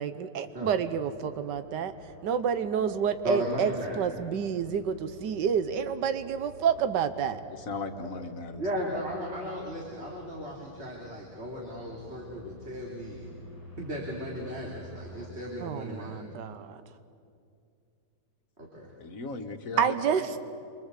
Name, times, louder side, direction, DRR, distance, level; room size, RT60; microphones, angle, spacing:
voice 1, 0.0-1.9 2.2-3.7 4.0-7.4 15.6-16.8 19.8-20.4, right 7 dB, 85° right, 11 dB, 1.6 m, -29 dB
sound 1, 0.9-15.3, right 1 dB, 20° right, 5.1 m, -51 dB
voice 2, 3.2-4.0 8.6-13.3 13.8-16.3 18.6-18.9, equal, 35° right, -2 dB, 3.5 m, -35 dB
voice 3, 7.5-9.0 19.0-20.4, left 3 dB, 55° left, 6 dB, 1.8 m, -38 dB
27.5 x 23.5 x 8.3 m, 2.4 s
omnidirectional pair, 1.8 m